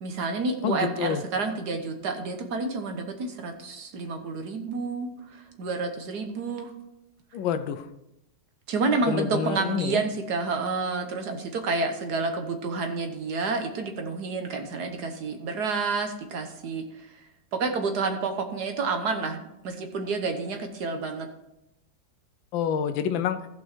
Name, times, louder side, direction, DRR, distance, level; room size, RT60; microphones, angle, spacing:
voice 1, 0.0-6.7 8.7-16.8 17.5-21.3, right 4 dB, 60° right, 5 dB, 1.5 m, -29 dB
voice 2, 0.6-1.2 7.3-7.9 9.1-10.0 22.5-23.4, left 8 dB, 90° left, 10 dB, 1.5 m, -27 dB
15.5 x 5.4 x 4.4 m, 0.84 s
omnidirectional pair, 2.0 m